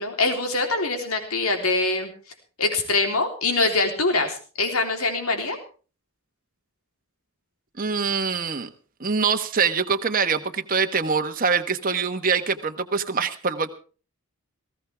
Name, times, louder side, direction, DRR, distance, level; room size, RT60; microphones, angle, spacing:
voice 1, 0.0-2.1 2.6-5.6, left 3 dB, 80° left, 4 dB, 3.6 m, -24 dB
voice 2, 7.8-8.7 9.0-13.7, right 5 dB, 40° right, 7 dB, 1.2 m, -24 dB
19.5 x 16.0 x 3.5 m, 0.37 s
head